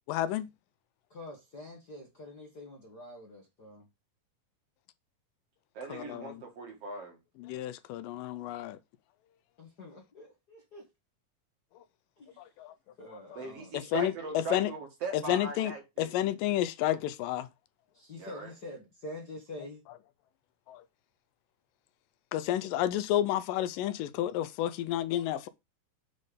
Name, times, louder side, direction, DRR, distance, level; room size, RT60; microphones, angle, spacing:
voice 1, 0.1-0.5 5.9-6.4 7.4-8.8 12.4-12.7 13.1-13.2 13.7-14.7 15.1-15.7 16.0-17.5 20.7-20.8 22.3-25.5, left 12 dB, 90° left, 2.3 m, -31 dB
voice 2, 1.1-3.8 9.6-10.8 12.2-12.4 13.0-13.9 17.9-19.8, left 1 dB, 45° left, 1.3 m, -46 dB
voice 3, 5.7-7.2 13.4-16.1 18.2-18.5, right 3 dB, 50° right, 2.6 m, -39 dB
7.5 x 4.3 x 4.9 m
omnidirectional pair, 3.9 m